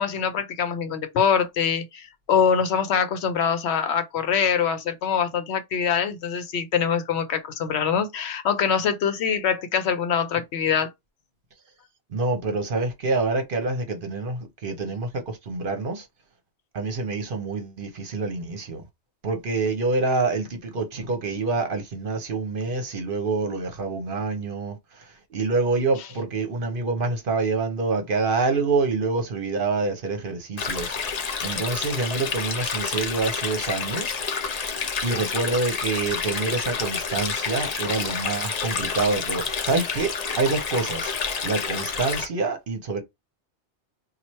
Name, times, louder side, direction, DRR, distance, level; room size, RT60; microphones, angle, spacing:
voice 1, 0.0-10.9, left 7 dB, 75° left, 0.9 m, -24 dB
voice 2, 12.1-16.0 16.7-18.8 19.2-25.0 25.3-30.9 31.2-34.2 35.0-41.1 41.4-43.0, right 3 dB, 55° right, 0.9 m, -26 dB
Stream, 30.6-42.3, left 5 dB, 45° left, 0.6 m, -29 dB
3.0 x 2.4 x 4.2 m
omnidirectional pair, 1.2 m